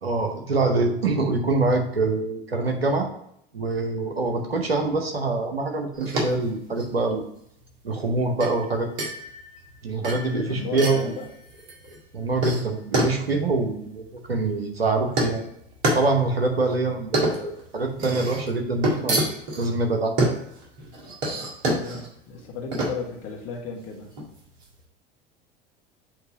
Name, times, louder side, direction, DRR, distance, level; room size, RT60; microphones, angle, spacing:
voice 1, 0.0-3.1 3.5-7.3 7.8-8.9 9.8-11.1 12.1-15.4 15.9-19.3 19.6-20.1, right 3 dB, 90° right, 4 dB, 1.0 m, -25 dB
sound 1, 5.9-24.7, right 1 dB, 60° right, 1.9 m, -29 dB
voice 2, 10.4-11.3 21.7-24.1, left 5 dB, 50° left, 1 dB, 1.5 m, -35 dB
7.5 x 2.9 x 4.8 m, 0.73 s
figure-of-eight pair, 75°, 29 cm